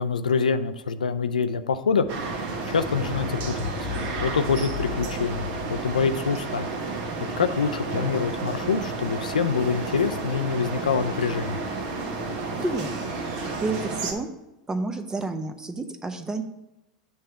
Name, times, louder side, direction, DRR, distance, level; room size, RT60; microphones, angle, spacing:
voice 1, 0.0-2.1 2.7-3.7 4.2-6.7 7.4-11.6, left 5 dB, 85° left, 10 dB, 0.4 m, -25 dB
sound 1, 2.0-8.4 9.3-9.4, left 8 dB, 25° left, 0.9 m, -38 dB
sound 2, 2.1-14.1, right 3 dB, 50° right, 1.1 m, -31 dB
voice 2, 12.6-12.9 13.6-14.3 14.7-16.4, right 3 dB, 15° right, 8 dB, 0.7 m, -29 dB
7.9 x 3.4 x 5.7 m, 0.92 s
hypercardioid pair, 90°, 4 cm